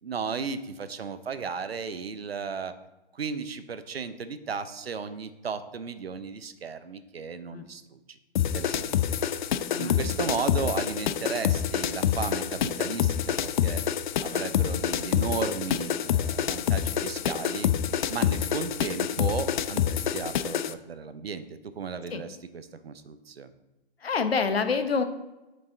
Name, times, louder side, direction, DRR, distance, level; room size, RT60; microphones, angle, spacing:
voice 1, 0.0-2.7 3.1-8.2 8.5-9.2 9.8-13.8 14.2-17.7 18.1-21.5 21.8-23.5, right 5 dB, 85° right, 12 dB, 0.7 m, -35 dB
sound 1, 8.4-20.7, left 10 dB, 55° left, 0.4 m, -27 dB
voice 2, 24.0-25.0, left 5 dB, 85° left, 8 dB, 0.9 m, -26 dB
7.6 x 5.4 x 3.8 m, 1.0 s
hypercardioid pair, 125°, 30 cm